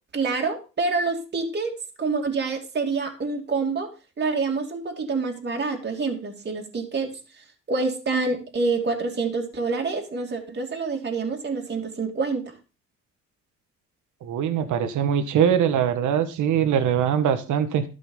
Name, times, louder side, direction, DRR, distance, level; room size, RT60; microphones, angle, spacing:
voice 1, 0.1-1.7 2.0-3.9 4.2-12.5, right 4 dB, 35° right, 1 dB, 2.7 m, -27 dB
voice 2, 14.2-17.8, right 8 dB, 80° right, 9 dB, 1.3 m, -22 dB
12.5 x 5.7 x 5.5 m, 0.32 s
cardioid pair, 90°, 30 cm